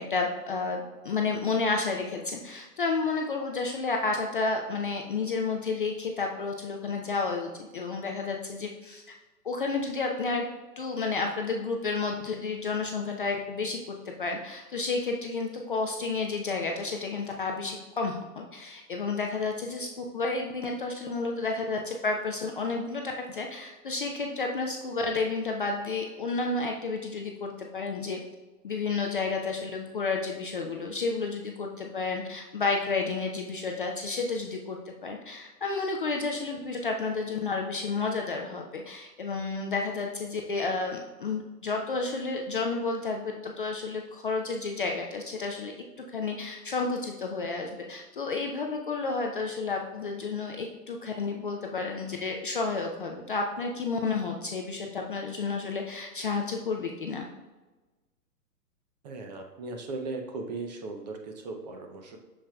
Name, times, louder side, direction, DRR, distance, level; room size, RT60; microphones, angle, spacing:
voice 1, 0.0-9.0 9.4-10.4 10.8-28.2 28.6-45.7 46.1-57.3, left 4 dB, 35° left, 2 dB, 0.4 m, -31 dB
voice 2, 59.0-62.2, right 3 dB, 25° right, 4 dB, 0.6 m, -37 dB
7.3 x 6.7 x 2.2 m, 1.2 s
hypercardioid pair, 125°, 50 cm